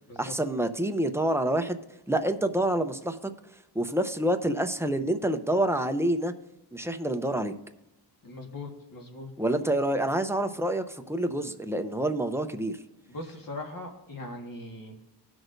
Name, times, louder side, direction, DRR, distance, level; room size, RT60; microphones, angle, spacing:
voice 1, 0.2-1.8 2.1-3.3 3.7-6.3 6.7-7.5 9.4-12.8, right 1 dB, 5° right, 7 dB, 0.6 m, -27 dB
voice 2, 8.2-9.3 9.6-9.7 13.1-15.0, left 2 dB, 50° left, 2 dB, 1.6 m, -40 dB
18.5 x 6.3 x 2.6 m, 0.92 s
wide cardioid pair, 115°, 42 cm